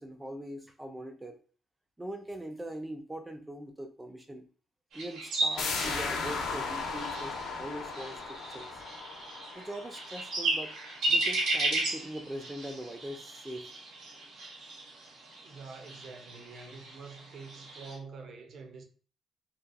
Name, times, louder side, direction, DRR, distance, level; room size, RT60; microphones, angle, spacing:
voice 1, 0.0-1.4 2.0-4.4 4.9-8.8 9.5-10.7 11.1-13.7, right 1 dB, 15° right, 0.4 m, -42 dB
sound 1, 4.9-18.0, right 2 dB, 80° right, 1.0 m, -35 dB
sound 2, 5.6-11.1 11.4-11.5, left 4 dB, 85° left, 0.6 m, -36 dB
voice 2, 15.4-18.8, right 4 dB, 60° right, 0.5 m, -46 dB
2.8 x 2.4 x 2.2 m
cardioid pair, 90°, 0 cm